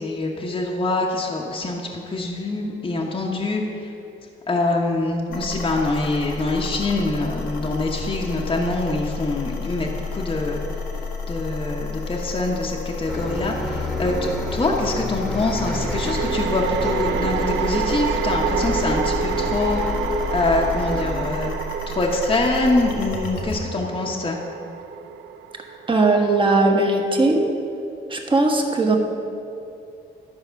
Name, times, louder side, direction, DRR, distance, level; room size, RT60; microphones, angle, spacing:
voice 1, 0.0-3.9 4.5-10.6 11.3-19.8 20.3-21.5 21.9-24.4, left 2 dB, 25° left, -2 dB, 0.9 m, -24 dB
sound 1, 5.3-23.6, left 4 dB, 85° left, 1.1 m, -31 dB
sound 2, 12.4-12.6 15.4-26.8, right 9 dB, 75° right, 0.4 m, -29 dB
Bus, 13.1-21.2, left 1 dB, ahead, 1.2 m, -30 dB
voice 2, 25.9-27.4 28.1-29.0, right 2 dB, 25° right, 2 dB, 1.2 m, -18 dB
11.5 x 4.8 x 5.7 m, 2.7 s
cardioid pair, 90°, 20 cm